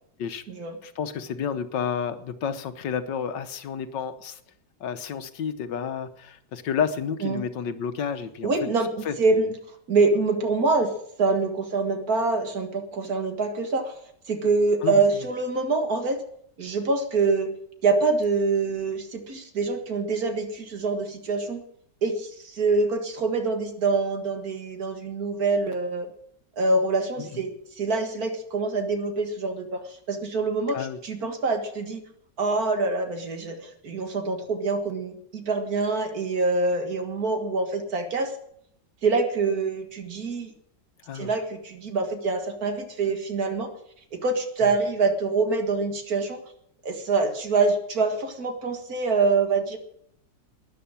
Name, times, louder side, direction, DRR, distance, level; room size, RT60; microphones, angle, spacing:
voice 1, 0.8-4.4 4.8-8.5 9.1-9.5 14.8-15.0 27.2-27.3 30.7-31.0 41.1-41.3, left 7 dB, 80° left, 10 dB, 1.7 m, -30 dB
voice 2, 8.4-9.5 9.9-10.9 11.2-14.0 14.3-16.2 16.6-17.5 17.8-21.6 22.0-26.1 26.6-27.5 27.8-32.0 32.4-38.3 39.0-40.5 41.1-43.7 44.1-46.4 46.8-49.8, right 3 dB, 55° right, 6 dB, 2.2 m, -25 dB
12.5 x 10.0 x 8.8 m, 0.72 s
omnidirectional pair, 1.9 m